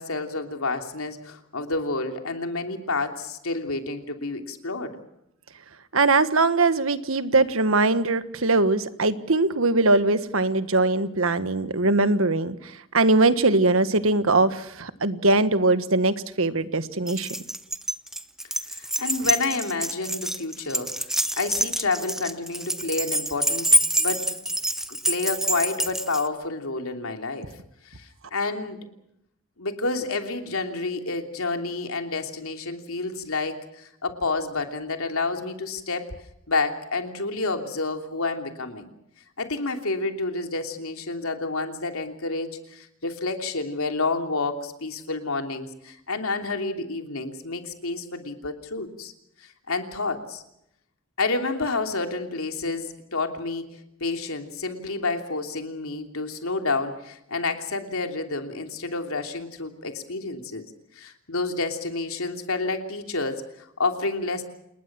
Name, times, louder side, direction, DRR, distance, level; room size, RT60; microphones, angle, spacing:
voice 1, 0.0-5.0 18.7-23.7 24.0-24.4 24.9-27.5 27.8-28.9 29.6-36.1 36.5-38.9 39.4-49.1 49.4-50.4 51.2-60.7 60.9-64.4, left 3 dB, 80° left, 5 dB, 3.1 m, -29 dB
voice 2, 5.9-17.3, right 3 dB, 75° right, 12 dB, 1.6 m, -21 dB
Keys jangling, 17.1-26.3, equal, ahead, 0.9 m, -26 dB
28.5 x 20.5 x 6.1 m, 0.79 s
head